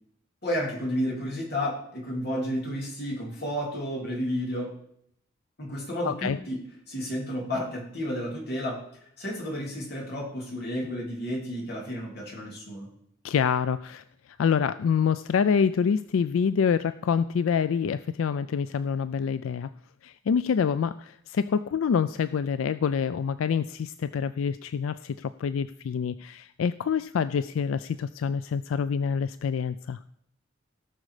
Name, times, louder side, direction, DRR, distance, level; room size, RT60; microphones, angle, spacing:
voice 1, 0.4-4.7 5.6-6.6 6.9-8.8 9.2-12.9, equal, 55° left, -1 dB, 3.3 m, -31 dB
voice 2, 6.0-6.4 13.2-19.7 20.0-30.0, left 6 dB, 90° left, 14 dB, 0.4 m, -26 dB
17.5 x 6.2 x 4.9 m, 0.72 s
head